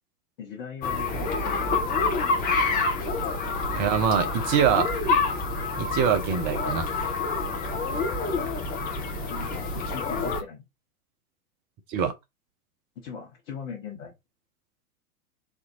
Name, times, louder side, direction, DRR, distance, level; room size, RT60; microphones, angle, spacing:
voice 1, 0.4-1.7 9.2-10.6 13.0-14.1, left 6 dB, 40° left, 1.3 m, -40 dB
sound 1, 0.8-10.4, left 3 dB, 20° left, 0.8 m, -27 dB
voice 2, 3.7-5.0 5.8-6.9 11.9-12.1, right 7 dB, 20° right, 0.5 m, -24 dB
4.3 x 2.8 x 2.5 m
figure-of-eight pair, 95°, 46 cm